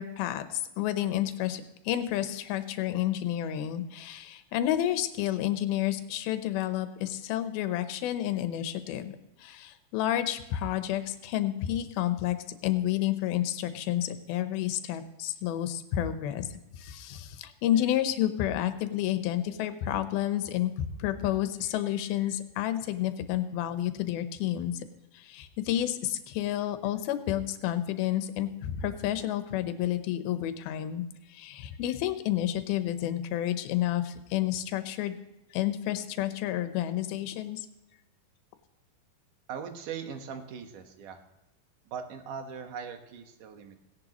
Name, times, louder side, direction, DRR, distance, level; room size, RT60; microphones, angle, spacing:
voice 1, 0.0-9.1 9.4-12.4 12.6-16.5 16.7-24.8 25.1-35.1 35.5-37.7, left 12 dB, 75° left, 9 dB, 2.6 m, -30 dB
voice 2, 39.5-41.2 41.9-43.8, right 7 dB, 65° right, 6 dB, 2.5 m, -40 dB
17.0 x 10.5 x 3.0 m, 0.95 s
omnidirectional pair, 4.6 m